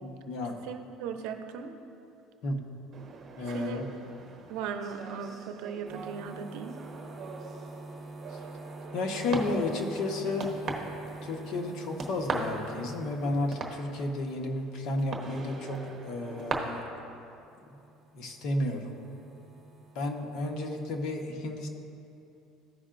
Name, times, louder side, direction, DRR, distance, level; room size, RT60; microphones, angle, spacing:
voice 1, 0.0-0.6 2.4-2.6 3.4-3.9 8.3-8.4 8.9-10.5 11.2-16.9 18.1-19.0 19.9-21.7, left 2 dB, 60° left, 3 dB, 1.0 m, -32 dB
voice 2, 0.6-1.8 3.4-3.9 4.5-6.8, right 7 dB, 75° right, 7 dB, 0.6 m, -38 dB
sound 1, 2.9-16.5, right 4 dB, 35° right, 1.1 m, -41 dB
sound 2, 5.9-17.1 17.4-21.0, right 2 dB, 15° right, 1.7 m, -47 dB
14.5 x 5.5 x 2.5 m, 2.7 s
cardioid pair, 130°, 0 cm